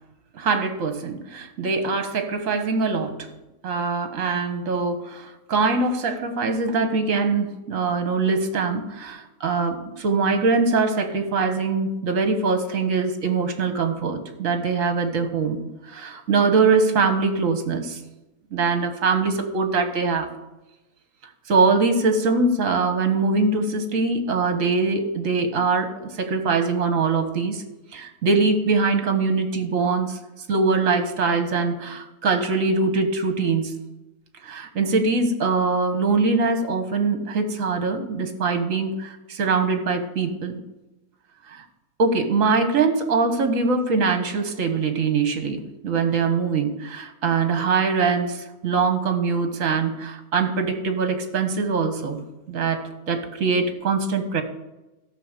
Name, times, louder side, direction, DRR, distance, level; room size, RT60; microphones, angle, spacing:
voice 1, 0.3-3.3 3.6-18.0 18.5-20.3 21.5-27.6 27.9-30.2 30.5-33.7 34.4-40.6 41.5-41.6 42.0-52.2 52.5-54.4, right 4 dB, 60° right, 7 dB, 1.5 m, -23 dB
13.5 x 6.1 x 6.6 m, 1.0 s
omnidirectional pair, 1.7 m